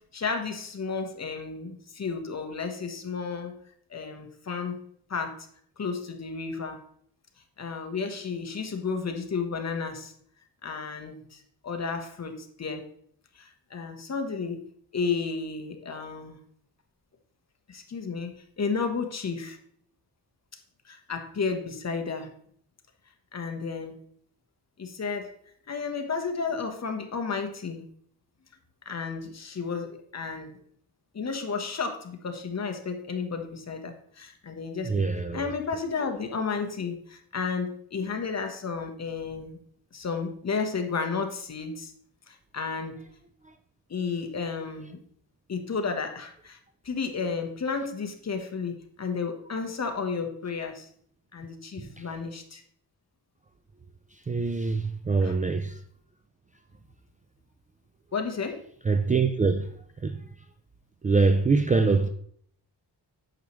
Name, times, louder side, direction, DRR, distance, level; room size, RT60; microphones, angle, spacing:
voice 1, 0.1-3.6 3.9-4.8 5.1-5.5 5.8-6.8 7.6-10.1 10.6-12.8 13.3-14.6 14.9-16.4 17.7-19.6 20.8-22.3 23.3-24.0 24.8-25.3 25.7-27.8 28.8-30.5 31.1-39.6 39.9-41.9 42.3-42.9 43.9-45.0 45.5-46.6 46.8-50.9 51.3-52.6 55.2-55.3 58.1-58.6, left 5 dB, 40° left, 1.2 m, -32 dB
voice 2, 34.8-35.5 51.8-52.1 54.1-55.8 58.8-59.7 60.0-60.3 61.0-62.1, right 4 dB, 20° right, 0.4 m, -24 dB
8.8 x 6.6 x 3.1 m
wide cardioid pair, 115°, 40 cm